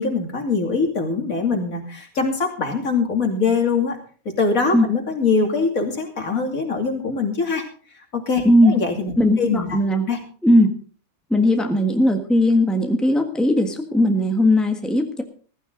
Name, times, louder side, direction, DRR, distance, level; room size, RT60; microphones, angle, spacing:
voice 1, 0.0-4.0 4.2-7.6 8.1-9.8 10.1-10.2, left 4 dB, 70° left, 3 dB, 3.1 m, -23 dB
voice 2, 8.4-8.8 9.2-10.1 10.4-10.7 11.3-15.2, left 1 dB, ahead, 4 dB, 1.5 m, -18 dB
15.0 x 15.0 x 3.9 m, 0.41 s
omnidirectional pair, 1.5 m